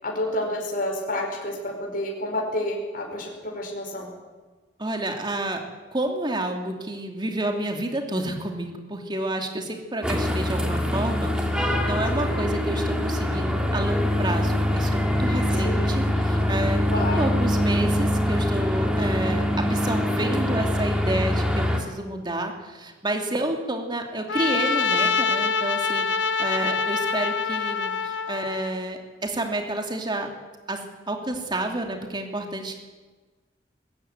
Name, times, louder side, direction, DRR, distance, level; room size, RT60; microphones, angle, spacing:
voice 1, 0.0-4.1 12.1-12.3 15.5-15.9 16.9-17.3, left 1 dB, 50° left, 0 dB, 5.0 m, -29 dB
voice 2, 4.8-5.6 5.9-30.3 30.7-32.8, right 1 dB, 25° right, 3 dB, 2.7 m, -30 dB
sound 1, 10.0-21.8, left 1 dB, 5° right, 2.6 m, -24 dB
Trumpet, 24.3-28.7, left 5 dB, 75° left, 1.2 m, -25 dB
21.0 x 16.0 x 9.3 m, 1.3 s
head